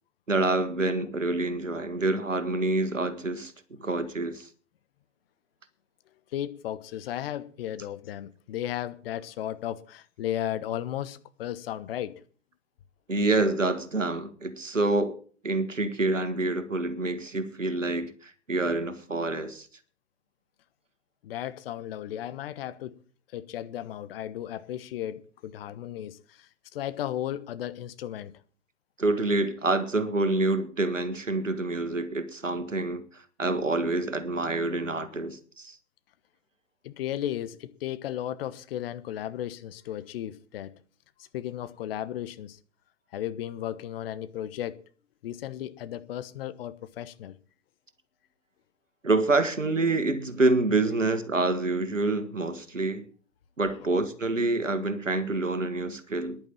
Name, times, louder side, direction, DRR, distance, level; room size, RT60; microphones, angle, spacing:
voice 1, 0.3-4.5 13.1-15.1 15.4-19.7 29.0-35.8 49.0-53.1 53.6-56.4, right 2 dB, 90° right, 1.7 m, -27 dB
voice 2, 6.3-12.2 21.2-23.0 23.3-28.3 36.8-40.8 41.2-42.6 43.1-44.8 45.2-47.3 53.7-53.9, left 12 dB, 50° left, 1.2 m, -35 dB
10.5 x 9.4 x 8.8 m
figure-of-eight pair, 105°, 37 cm